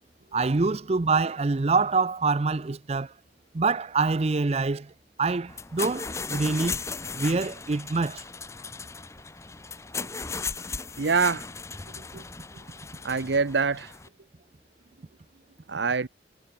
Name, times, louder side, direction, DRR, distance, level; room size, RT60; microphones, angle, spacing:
voice 1, 0.3-3.1 3.5-4.9 5.2-6.8 7.1-8.2, right 4 dB, 35° right, 0.5 m, -25 dB
sound 1, 5.5-14.1, left 4 dB, 15° left, 0.7 m, -36 dB
voice 2, 11.0-11.5 12.0-12.2 13.0-13.9 15.7-16.1, right 4 dB, 90° right, 0.9 m, -25 dB
head